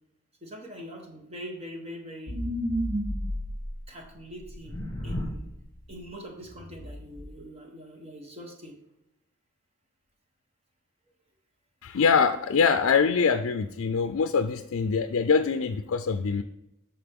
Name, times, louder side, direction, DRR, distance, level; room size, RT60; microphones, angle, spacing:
voice 1, 0.4-2.4 3.9-4.7 5.0-5.5 5.9-8.8, equal, 30° right, 1 dB, 1.3 m, -43 dB
sound 1, 2.3-3.8 4.5-5.5 5.8-6.0 6.4-7.3, equal, 20° left, 1.1 m, -32 dB
voice 2, 11.8-16.4, left 5 dB, 75° left, 8 dB, 0.4 m, -24 dB
12.5 x 4.4 x 3.6 m, 0.87 s
head